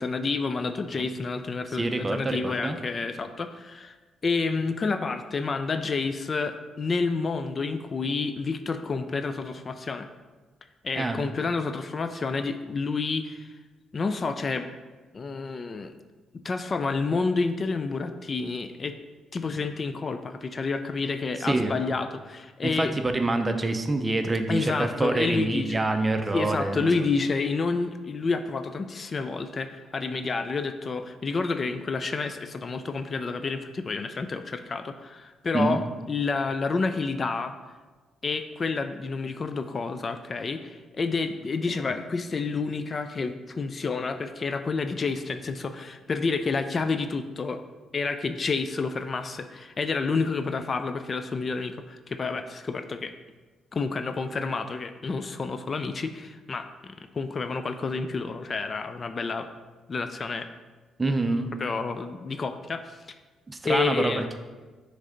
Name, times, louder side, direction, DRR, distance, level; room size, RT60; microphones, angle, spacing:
voice 1, 0.0-4.0 4.2-10.1 10.8-13.5 13.9-14.7 15.1-15.9 16.3-19.0 19.3-22.9 24.5-25.9 26.3-35.8 36.1-37.5 38.2-47.6 47.9-53.1 53.7-59.5 59.9-60.5 61.6-63.0 63.6-64.3, left 4 dB, 40° left, 9 dB, 0.3 m, -29 dB
voice 2, 1.8-2.8 11.0-11.2 21.4-21.8 22.6-26.9 35.5-35.8 61.0-61.5 63.5-64.4, right 2 dB, 20° right, 7 dB, 0.5 m, -26 dB
6.3 x 3.3 x 5.0 m, 1.3 s
cardioid pair, 90°, 0 cm